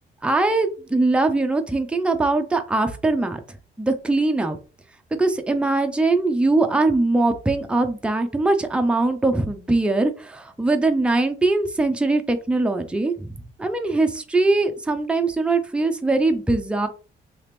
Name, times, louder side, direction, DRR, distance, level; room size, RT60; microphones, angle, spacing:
voice 1, 0.2-3.4 3.8-4.6 5.1-16.9, right 2 dB, 5° right, 6 dB, 0.5 m, -21 dB
2.9 x 2.9 x 3.3 m, 0.35 s
cardioid pair, 90°, 20 cm